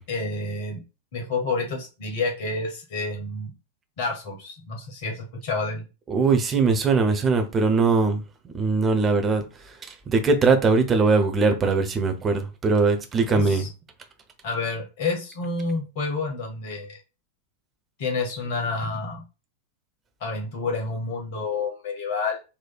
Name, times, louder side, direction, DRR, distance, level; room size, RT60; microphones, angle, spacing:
voice 1, 0.1-0.8 1.1-3.5 4.0-5.8 13.3-13.7 14.4-17.0 18.0-19.2 20.2-22.4, left 3 dB, 50° left, 1.4 m, -29 dB
voice 2, 6.1-8.2 8.6-9.4 10.1-13.7, right 4 dB, 20° right, 0.7 m, -21 dB
4.2 x 3.1 x 2.3 m
figure-of-eight pair, 90°, 0 cm